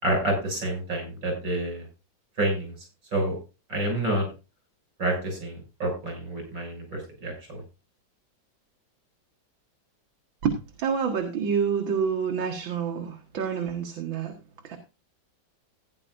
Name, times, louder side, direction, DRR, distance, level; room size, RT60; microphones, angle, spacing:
voice 1, 0.0-1.9 2.4-2.7 3.1-3.4 3.7-4.3 5.0-7.6, right 1 dB, 70° right, 2 dB, 7.5 m, -28 dB
voice 2, 10.4-14.3 14.6-14.8, right 6 dB, 85° right, 3 dB, 2.2 m, -28 dB
16.0 x 10.5 x 2.6 m, 0.29 s
omnidirectional pair, 2.0 m